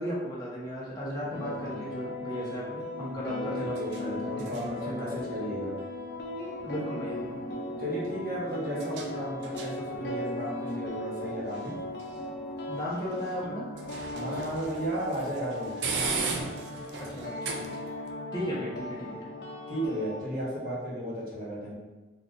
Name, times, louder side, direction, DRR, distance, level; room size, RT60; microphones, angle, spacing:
voice 1, 0.0-5.5 6.6-7.8 12.1-12.2 12.7-13.7 17.0-17.8 18.3-19.3, equal, 20° left, -6 dB, 0.8 m, -36 dB
sound 1, 0.6-18.1, right 4 dB, 80° right, 0.4 m, -41 dB
sound 2, 1.3-20.2, left 1 dB, 70° left, 0.5 m, -38 dB
voice 2, 3.3-5.7 7.8-11.7 14.1-15.7 18.4-18.5 19.7-21.7, equal, 50° right, -6 dB, 1.1 m, -34 dB
4.1 x 2.4 x 2.6 m, 1.2 s
head